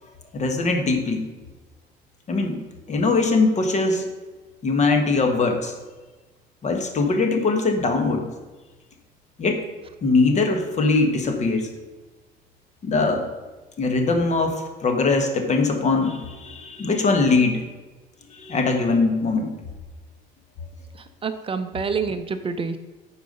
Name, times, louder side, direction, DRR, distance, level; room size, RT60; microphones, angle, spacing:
voice 1, 0.3-1.2 2.3-2.6 2.9-4.1 4.6-5.7 6.6-8.3 9.4-9.6 10.0-11.7 12.8-13.3 13.8-17.6 18.3-19.5, left 3 dB, 45° left, 4 dB, 1.4 m, -21 dB
voice 2, 20.9-22.8, right 5 dB, 35° right, 9 dB, 0.5 m, -27 dB
9.0 x 4.8 x 5.4 m, 1.2 s
cardioid pair, 110°, 17 cm